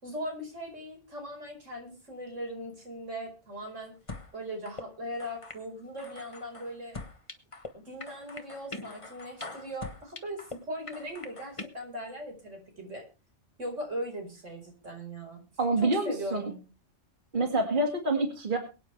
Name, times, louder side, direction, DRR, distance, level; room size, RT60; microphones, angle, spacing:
voice 1, 0.0-3.9 4.3-7.0 7.7-13.0 13.6-15.4 15.8-16.6, equal, 85° right, 2 dB, 5.2 m, -39 dB
sound 1, 4.1-4.3 4.7-4.8 5.2-5.6 6.0-7.7 8.0-10.6 10.9-11.7, left 3 dB, 25° left, 1.3 m, -42 dB
voice 2, 15.6-16.5 17.3-18.6, right 2 dB, 40° right, 3 dB, 2.3 m, -27 dB
23.0 x 9.3 x 3.4 m, 0.31 s
omnidirectional pair, 1.2 m